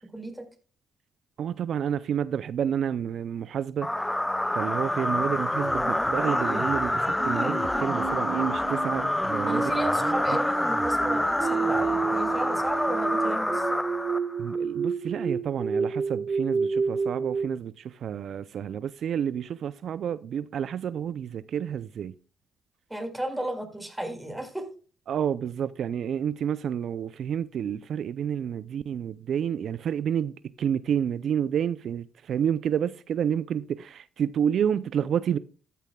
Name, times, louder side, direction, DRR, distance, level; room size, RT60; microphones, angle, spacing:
voice 1, 0.1-0.5 9.4-13.7 22.9-24.7, right 1 dB, 5° right, 4.6 m, -33 dB
voice 2, 1.4-3.9 4.5-9.6 10.3-10.4 14.4-22.1 25.1-35.4, right 8 dB, 70° right, 0.4 m, -29 dB
sound 1, 3.8-14.6, left 1 dB, 10° left, 0.4 m, -27 dB
sound 2, 7.2-17.6, right 5 dB, 50° right, 1.3 m, -30 dB
14.5 x 10.5 x 2.3 m
supercardioid pair, 65°, 0 cm